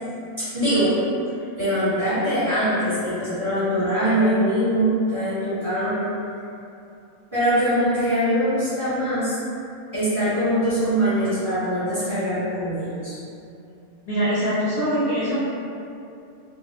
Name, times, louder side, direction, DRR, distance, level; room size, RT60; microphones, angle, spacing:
voice 1, 0.4-1.0 1.6-6.1 7.3-9.3 9.9-13.1, equal, 25° right, -15 dB, 1.0 m, -22 dB
voice 2, 14.1-15.3, equal, 50° left, -12 dB, 0.4 m, -23 dB
2.7 x 2.2 x 2.5 m, 2.6 s
omnidirectional pair, 1.6 m